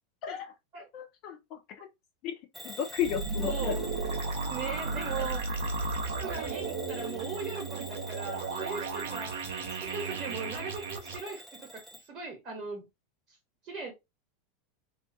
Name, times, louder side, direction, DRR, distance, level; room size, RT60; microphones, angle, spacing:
voice 1, 0.2-0.5 0.9-1.6 2.2-2.4 2.6-3.7, left 9 dB, 50° left, 0.5 m, -33 dB
Bell / Alarm, 2.5-12.1, equal, 5° left, 0.6 m, -46 dB
sound 1, 3.0-11.2, right 4 dB, 65° right, 0.5 m, -34 dB
voice 2, 3.4-3.9 4.5-5.4 6.0-12.8 13.6-13.9, right 4 dB, 35° right, 0.9 m, -39 dB
2.4 x 2.3 x 2.3 m
figure-of-eight pair, 85°, 0 cm